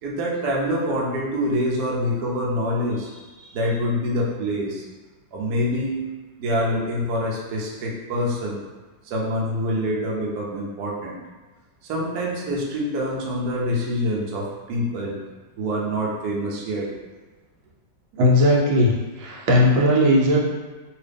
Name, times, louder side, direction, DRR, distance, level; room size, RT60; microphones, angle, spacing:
voice 1, 0.0-4.8 5.3-6.1 6.4-8.6 9.0-11.2 11.8-15.2 15.6-16.9, equal, 65° right, -3 dB, 1.1 m, -26 dB
voice 2, 18.2-20.4, left 1 dB, 90° right, -3 dB, 1.5 m, -18 dB
2.9 x 2.9 x 3.4 m, 1.3 s
omnidirectional pair, 2.1 m